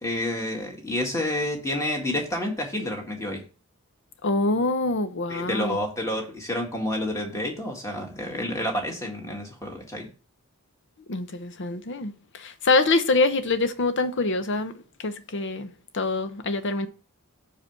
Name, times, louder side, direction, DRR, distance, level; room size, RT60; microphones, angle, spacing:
voice 1, 0.0-3.4 5.3-10.1, left 1 dB, 15° left, 1.8 m, -29 dB
voice 2, 4.2-5.8 11.1-16.9, left 3 dB, 55° left, 0.8 m, -25 dB
5.8 x 4.8 x 6.6 m
head